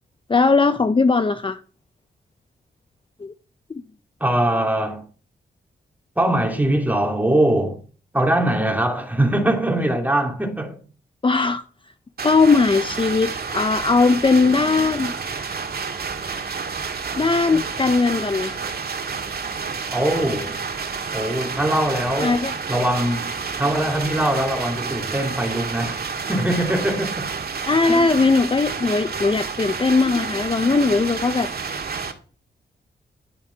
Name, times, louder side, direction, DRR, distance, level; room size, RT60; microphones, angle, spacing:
voice 1, 0.3-1.6 3.2-3.3 11.2-11.6 12.2-15.1 17.2-18.6 22.2-22.5 27.7-31.5, left 4 dB, 30° left, 0.7 m, -19 dB
voice 2, 4.2-5.0 6.2-7.8 8.1-10.8 19.9-20.6 21.1-23.3 23.6-27.3 27.9-28.1, right 1 dB, 10° right, 2.9 m, -22 dB
sound 1, 12.2-32.1, right 5 dB, 60° right, 2.1 m, -29 dB
11.5 x 8.5 x 4.6 m
cardioid pair, 60°, 18 cm